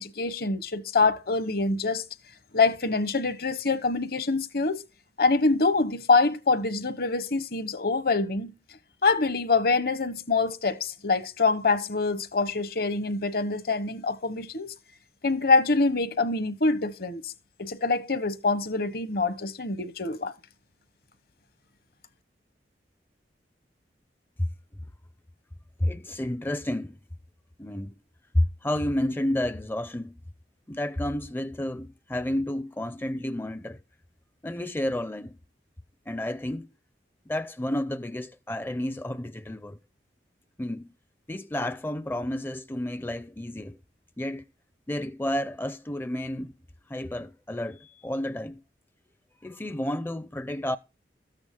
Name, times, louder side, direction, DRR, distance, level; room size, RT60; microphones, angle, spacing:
voice 1, 0.0-2.0 2.5-4.8 5.2-8.5 9.0-14.7 15.2-17.3 17.6-20.3, left 3 dB, 60° left, 1.1 m, -25 dB
voice 2, 25.8-27.0 27.6-27.9 28.3-30.1 30.7-33.8 34.4-35.4 36.1-36.7 37.3-39.8 40.6-40.9 41.3-43.8 44.2-44.4 44.9-46.5 46.9-48.6 49.4-50.8, left 1 dB, 10° left, 0.5 m, -30 dB
13.5 x 8.9 x 3.7 m
head